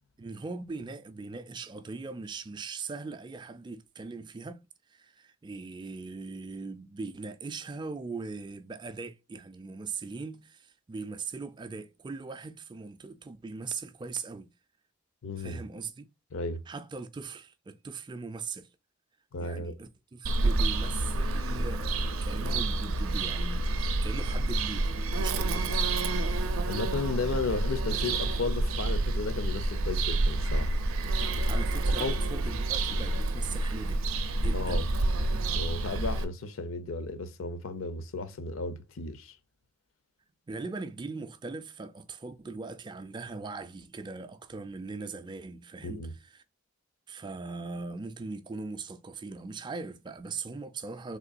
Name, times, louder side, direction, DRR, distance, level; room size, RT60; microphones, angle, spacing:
voice 1, 0.2-4.6 4.9-14.5 15.4-16.1 16.7-18.7 19.4-25.9 31.4-34.0 34.4-34.9 40.5-46.4 47.1-51.2, right 4 dB, 20° right, 0.3 m, -40 dB
voice 2, 15.2-15.6 16.3-16.6 19.3-19.8 26.7-30.7 32.0-32.2 34.5-34.9 35.5-39.4 45.8-46.1, left 3 dB, 75° left, 0.6 m, -34 dB
Bird vocalization bird call bird song, 20.2-36.2, right 2 dB, 80° right, 0.5 m, -28 dB
3.6 x 2.9 x 2.5 m
head